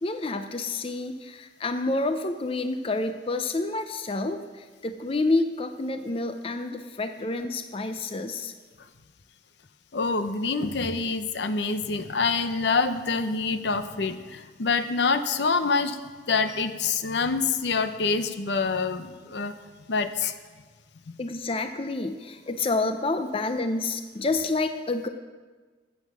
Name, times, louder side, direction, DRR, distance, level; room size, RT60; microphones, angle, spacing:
voice 1, 0.0-8.5 21.2-25.1, left 2 dB, 30° left, 8 dB, 0.5 m, -28 dB
voice 2, 9.9-16.0 16.3-19.5 19.9-20.3 21.1-21.2, left 4 dB, 70° left, 10 dB, 0.7 m, -26 dB
14.5 x 8.1 x 6.2 m, 1.4 s
head